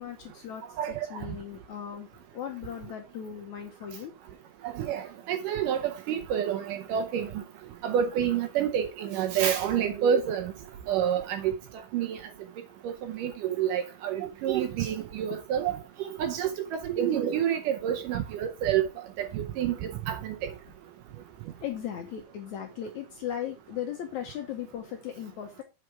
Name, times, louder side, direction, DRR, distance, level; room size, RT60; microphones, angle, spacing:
voice 1, 0.0-2.1 2.3-4.1 15.3-15.4 21.6-25.6, left 9 dB, 70° left, 1.9 m, -37 dB
voice 2, 4.6-7.3 7.8-10.5 10.9-11.5 11.9-12.2 12.8-18.8 19.2-20.4, right 9 dB, 75° right, 2.1 m, -28 dB
7.8 x 4.9 x 4.8 m
omnidirectional pair, 4.3 m